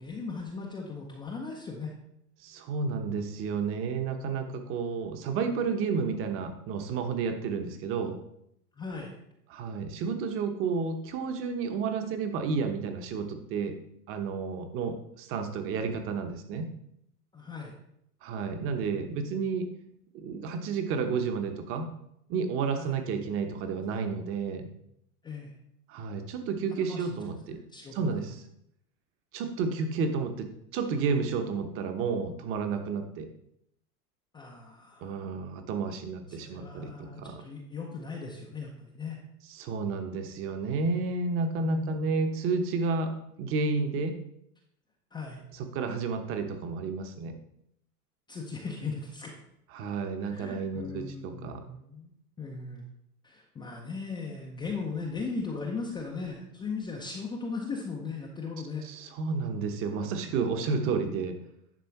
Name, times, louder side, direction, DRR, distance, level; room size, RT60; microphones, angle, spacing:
voice 1, 0.0-1.9 8.8-9.2 17.3-17.7 22.8-23.0 25.2-25.5 26.8-27.2 27.5-28.2 34.3-35.3 36.3-39.2 41.5-42.1 45.1-45.4 48.3-49.4 50.2-52.1 52.4-52.9 53.2-58.9, left 4 dB, 10° left, -2 dB, 0.5 m, -38 dB
voice 2, 2.4-8.2 9.5-13.8 14.1-16.7 18.2-19.7 20.1-21.9 22.3-24.7 25.9-27.6 27.9-28.4 29.3-33.3 35.0-37.4 39.5-43.1 43.4-44.2 45.5-47.3 49.7-51.6 58.8-61.4, right 5 dB, 30° right, 7 dB, 1.0 m, -31 dB
10.5 x 3.7 x 5.8 m, 0.76 s
supercardioid pair, 145°, 46 cm